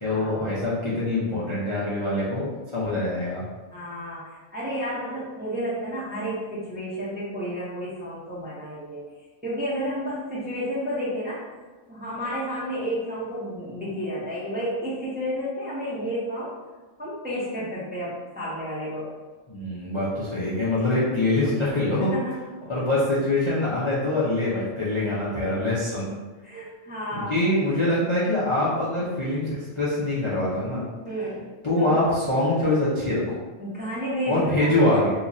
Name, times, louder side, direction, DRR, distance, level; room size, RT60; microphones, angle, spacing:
voice 1, 0.0-3.4 19.5-22.1 22.7-26.1 27.1-30.8 31.6-33.4 34.3-35.1, left 1 dB, 30° left, -9 dB, 0.5 m, -24 dB
voice 2, 3.7-9.0 9.4-11.4 11.9-16.5 17.0-19.1 22.0-22.4 26.4-27.3 31.0-31.5 31.8-32.0 33.6-35.0, equal, 10° right, -8 dB, 0.6 m, -31 dB
3.0 x 2.4 x 3.9 m, 1.3 s
omnidirectional pair, 1.4 m